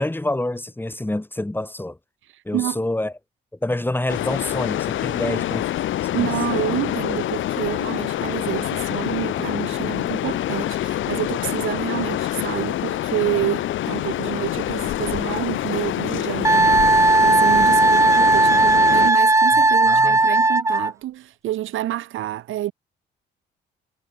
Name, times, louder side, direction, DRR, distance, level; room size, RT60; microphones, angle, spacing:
voice 1, 0.0-2.0 2.4-3.1 3.6-5.6 6.1-6.3 19.8-20.2, left 1 dB, 10° left, 6.8 m, -27 dB
sound 1, 4.1-19.1, left 13 dB, 80° left, 2.9 m, -26 dB
voice 2, 6.1-22.7, right 14 dB, 85° right, 6.5 m, -28 dB
Wind instrument woodwind instrument, 16.4-20.9, right 2 dB, 15° right, 1.5 m, -16 dB
cardioid pair, 90°, 20 cm